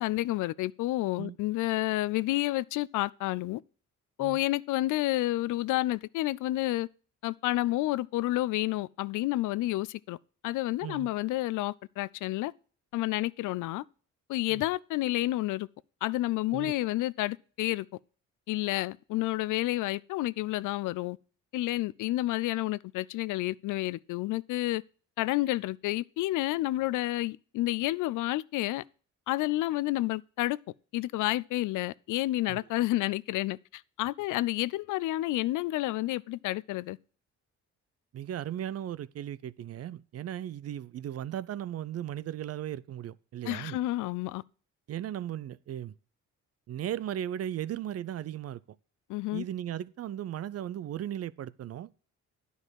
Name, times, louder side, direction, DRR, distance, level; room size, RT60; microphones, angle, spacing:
voice 1, 0.0-3.6 4.2-6.9 7.2-10.2 10.4-12.5 12.9-13.8 14.3-15.7 16.0-17.9 18.5-21.2 21.5-24.8 25.2-28.8 29.3-30.6 30.9-37.0 43.4-44.4 49.1-49.4, left 17 dB, 85° left, 0.5 m, -30 dB
voice 2, 38.1-43.8 44.9-45.9 46.7-48.6 49.3-51.9, right 11 dB, 55° right, 0.6 m, -36 dB
9.9 x 5.5 x 6.2 m
cardioid pair, 90°, 30 cm